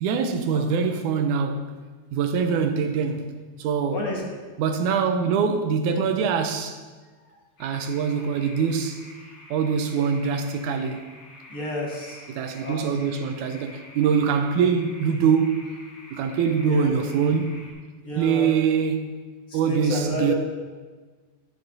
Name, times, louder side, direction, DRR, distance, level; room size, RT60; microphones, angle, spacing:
voice 1, 0.0-1.7 2.1-4.2 4.6-6.8 7.6-9.1 9.5-11.1 12.3-15.7 16.1-17.6 18.2-19.2 19.5-20.3, right 6 dB, 80° right, 2.0 m, -24 dB
voice 2, 3.9-4.2 11.5-12.2 12.6-12.8 16.7-16.9 18.0-18.5 19.5-20.3, left 2 dB, 45° left, 1.3 m, -30 dB
sound 1, 7.6-17.7, left 2 dB, 85° left, 3.2 m, -47 dB
17.0 x 6.1 x 2.7 m
omnidirectional pair, 3.6 m